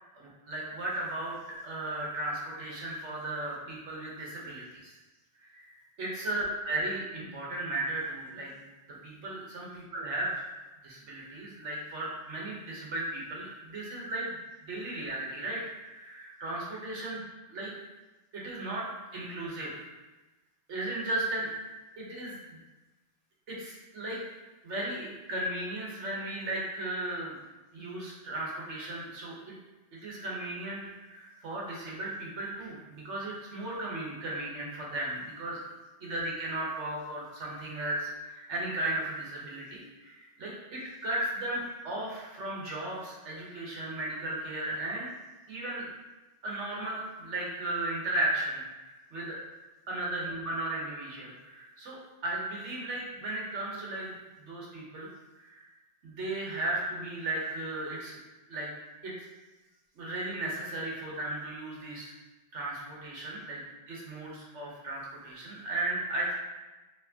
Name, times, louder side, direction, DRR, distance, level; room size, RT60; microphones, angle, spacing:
voice 1, 0.1-1.4 1.6-4.9 5.4-8.6 9.0-10.3 10.8-14.4 14.6-15.6 15.9-17.2 17.5-17.7 18.3-18.9 19.1-19.8 20.7-21.5 22.0-22.6 23.5-24.2 24.6-27.4 27.7-29.5 29.9-35.6 36.0-45.1 45.5-45.9 46.4-49.4 49.9-52.0 52.2-54.1 54.4-55.1 55.4-55.6 56.0-58.2 58.5-58.7 59.0-59.3 59.9-62.1 62.5-63.6 63.9-66.3, right 1 dB, 85° right, -4 dB, 1.3 m, -35 dB
4.4 x 3.1 x 2.8 m, 1.1 s
omnidirectional pair, 1.2 m